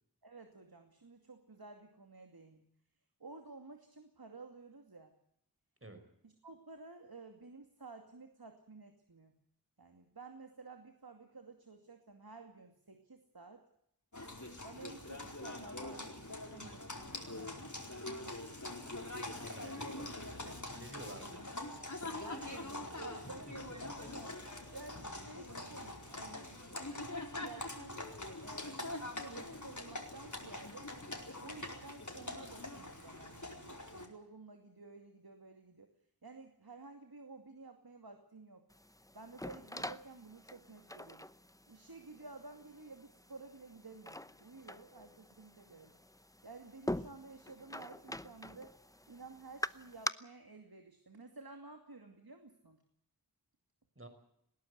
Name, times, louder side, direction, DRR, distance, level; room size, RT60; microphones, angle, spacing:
voice 1, 0.2-2.6 3.2-5.1 6.2-9.3 9.8-13.6 14.6-17.8 22.1-24.3 24.7-26.8 27.4-28.0 28.4-30.9 31.4-35.9 36.2-38.7 39.1-41.3 41.7-46.0 46.4-48.8 49.1-52.8, right 3 dB, 70° right, 5 dB, 2.5 m, -53 dB
Livestock farm animals working animals, 14.1-34.1, left 2 dB, 50° left, 4.6 m, -44 dB
voice 2, 19.4-21.4 23.2-23.5 23.8-24.1 54.0-54.1, right 2 dB, 35° right, 8 dB, 5.2 m, -52 dB
sound 1, 38.7-50.1, left 1 dB, 10° left, 0.8 m, -45 dB
20.5 x 17.5 x 8.1 m, 0.74 s
wide cardioid pair, 45°, 38 cm